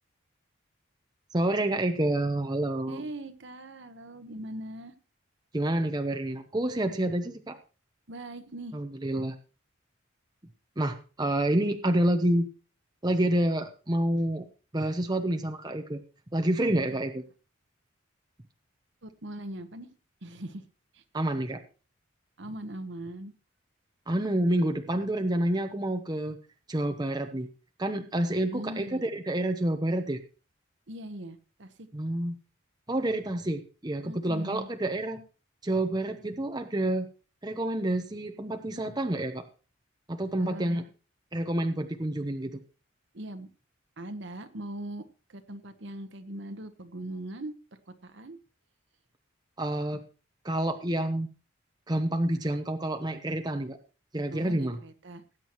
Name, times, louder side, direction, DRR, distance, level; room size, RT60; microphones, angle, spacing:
voice 1, 1.3-3.0 5.5-7.6 8.7-9.3 10.8-12.5 13.0-14.5 14.7-16.0 16.3-17.2 21.1-21.6 24.1-26.4 26.7-27.5 27.8-30.2 31.9-32.3 32.9-35.2 35.6-37.1 37.4-39.4 40.1-40.8 41.3-42.6 49.6-50.0 50.4-51.3 51.9-53.8 54.1-54.8, right 1 dB, 20° right, 6 dB, 0.8 m, -28 dB
voice 2, 2.9-4.9 8.1-8.8 16.6-17.0 19.0-19.9 20.2-20.7 20.9-21.0 22.4-23.3 28.5-29.0 30.9-31.9 34.0-34.7 40.4-40.8 43.1-43.5 44.0-48.4 54.3-55.2, right 1 dB, 60° right, 9 dB, 1.1 m, -40 dB
19.0 x 9.1 x 3.1 m, 0.36 s
head